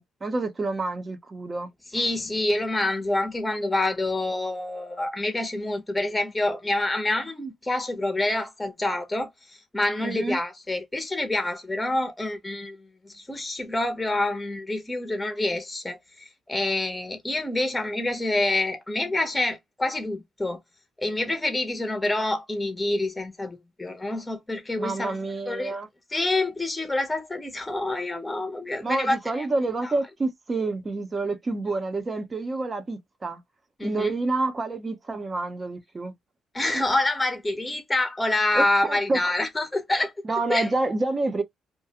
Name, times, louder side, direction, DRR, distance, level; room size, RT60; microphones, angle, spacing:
voice 1, 0.0-1.7 10.0-10.4 24.8-25.9 28.8-33.4 33.8-36.1 38.5-39.3 40.2-41.4, right 2 dB, 30° right, 0.6 m, -28 dB
voice 2, 1.9-9.3 9.7-16.0 16.5-20.6 21.0-25.2 25.5-25.8 26.1-29.5 29.8-29.9 33.8-34.1 36.5-40.1 40.5-40.7, left 2 dB, 15° left, 0.7 m, -27 dB
2.4 x 2.2 x 2.7 m
cardioid pair, 90°, 0 cm